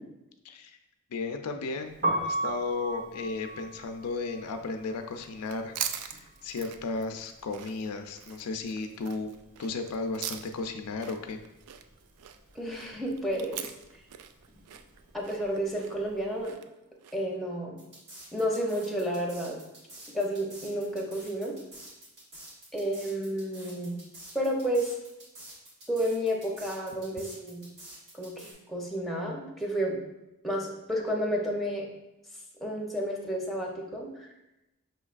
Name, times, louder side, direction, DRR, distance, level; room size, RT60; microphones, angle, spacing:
voice 1, 0.4-0.8 1.1-2.0 2.2-9.3 9.6-11.4, left 3 dB, 85° left, 6 dB, 0.4 m, -34 dB
Piano, 1.9-7.8 8.1-9.7 10.0-16.4, right 1 dB, 40° right, 1.1 m, -37 dB
sound 1, 5.1-17.4, right 9 dB, 75° right, 0.3 m, -42 dB
voice 2, 12.5-13.6 15.1-16.6 17.1-17.8 18.3-19.6 20.1-21.6 22.7-24.0 24.3-24.9 25.9-27.7 28.1-30.0 30.4-31.9 32.6-34.3, equal, ahead, -1 dB, 0.6 m, -31 dB
sound 2, 17.8-28.5, right 1 dB, 55° right, 1.4 m, -48 dB
5.7 x 3.1 x 2.4 m, 0.94 s
head